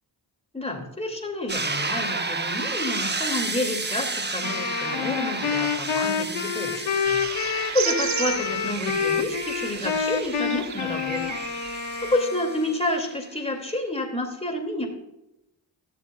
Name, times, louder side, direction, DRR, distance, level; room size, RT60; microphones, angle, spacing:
voice 1, 0.5-11.2 11.7-14.9, left 1 dB, 15° left, 2 dB, 2.5 m, -29 dB
sound 1, 1.5-13.1, right 3 dB, 20° right, 0.9 m, -32 dB
Wind instrument woodwind instrument, 4.4-12.8, left 7 dB, 90° left, 1.1 m, -28 dB
sound 2, 7.0-12.2, right 9 dB, 40° right, 0.4 m, -34 dB
14.0 x 7.2 x 2.4 m, 0.86 s
cardioid pair, 50°, 46 cm